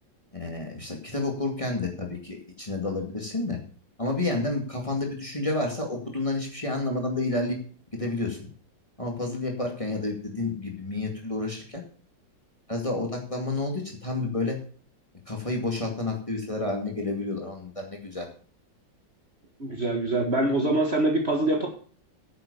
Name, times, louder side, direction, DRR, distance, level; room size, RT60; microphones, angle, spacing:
voice 1, 0.3-3.6 4.0-7.6 7.9-8.5 9.0-11.8 12.7-14.6 15.3-18.3, left 2 dB, 15° left, 1 dB, 2.2 m, -30 dB
voice 2, 19.6-21.7, right 2 dB, 35° right, 2 dB, 1.9 m, -24 dB
9.6 x 7.5 x 6.9 m, 0.43 s
omnidirectional pair, 2.1 m